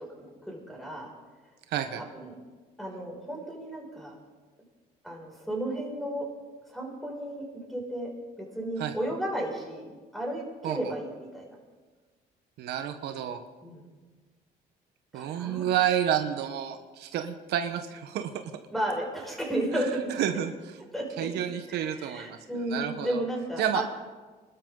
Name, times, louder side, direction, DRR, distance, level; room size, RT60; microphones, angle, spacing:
voice 1, 0.2-1.1 2.0-2.4 2.8-4.2 5.0-6.2 6.7-8.1 8.4-11.5 13.6-13.8 15.1-15.7 18.7-20.3 20.9-21.0 21.3-21.4 21.7-23.8, right 1 dB, ahead, -2 dB, 6.2 m, -33 dB
voice 2, 1.7-2.0 8.8-8.9 10.6-10.9 12.6-13.4 15.1-18.3 19.7-19.9 20.2-20.8 21.2-23.2 23.6-23.8, right 10 dB, 80° right, 7 dB, 1.2 m, -30 dB
27.0 x 12.5 x 3.9 m, 1.4 s
cardioid pair, 110°, 17 cm